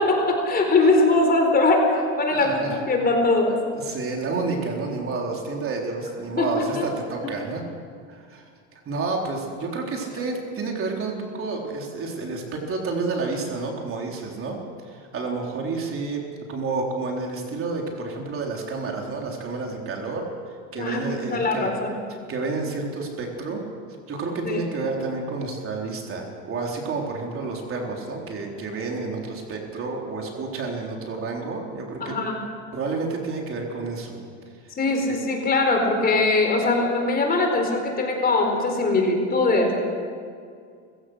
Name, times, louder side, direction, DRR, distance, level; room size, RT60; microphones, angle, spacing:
voice 1, 0.0-3.6 6.4-6.8 7.2-7.3 20.8-21.9 24.4-24.6 32.0-32.4 34.8-39.7, left 2 dB, 25° left, 3 dB, 4.3 m, -21 dB
voice 2, 2.3-2.8 3.7-7.6 8.1-14.6 14.8-16.2 16.5-21.7 22.3-23.6 24.1-32.2 32.7-34.2 35.1-35.2, right 3 dB, 40° right, 0 dB, 4.0 m, -30 dB
28.5 x 16.0 x 6.5 m, 2.2 s
supercardioid pair, 120°, 34 cm